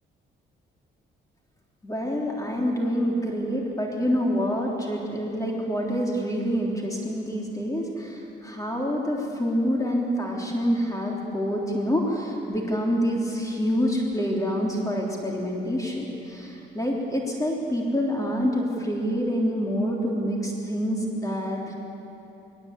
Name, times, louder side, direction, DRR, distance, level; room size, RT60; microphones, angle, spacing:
voice 1, 1.8-21.7, equal, 15° left, -2 dB, 3.3 m, -27 dB
21.0 x 19.5 x 8.3 m, 2.9 s
cardioid pair, 90°, 20 cm